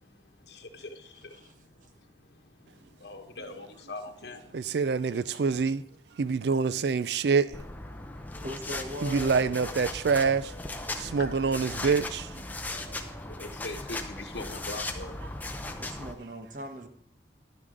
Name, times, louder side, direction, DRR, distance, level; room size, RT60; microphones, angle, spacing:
voice 1, 0.5-0.9 3.0-4.4 11.2-11.3 13.4-15.1, left 2 dB, 75° left, 1.2 m, -40 dB
voice 2, 4.5-5.8 6.2-7.6 9.0-10.5 10.9-12.4 15.6-15.7, right 5 dB, 70° right, 0.4 m, -26 dB
sound 1, 6.6-13.6, left 1 dB, 35° left, 2.6 m, -51 dB
sound 2, 7.5-16.1, left 2 dB, 10° left, 0.6 m, -38 dB
voice 3, 8.4-9.4 15.8-16.9, equal, 45° right, 1.2 m, -39 dB
11.0 x 9.7 x 3.8 m
head